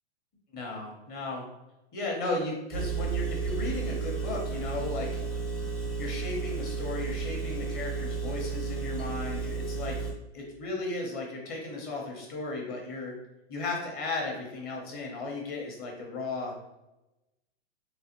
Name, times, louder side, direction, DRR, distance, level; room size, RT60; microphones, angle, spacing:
voice 1, 0.5-1.5 1.9-5.2 6.0-10.1 10.3-13.2 13.5-16.6, left 2 dB, 25° left, -1 dB, 0.9 m, -35 dB
Engine, 2.7-10.1, right 5 dB, 5° left, 0.3 m, -33 dB
4.0 x 2.3 x 2.9 m, 0.95 s
hypercardioid pair, 135°, 34 cm